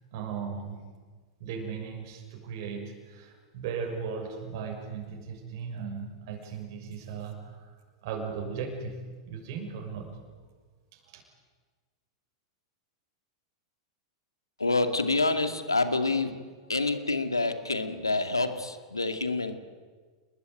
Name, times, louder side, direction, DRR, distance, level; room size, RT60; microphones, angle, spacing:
voice 1, 0.1-0.8 1.4-7.7 8.0-9.0 9.3-10.1 10.9-11.2, right 6 dB, 55° right, 2 dB, 6.5 m, -37 dB
voice 2, 14.6-16.4 16.7-19.6, left 3 dB, 90° left, 8 dB, 2.4 m, -27 dB
29.5 x 21.0 x 9.4 m, 1.5 s
figure-of-eight pair, 95°, 2 cm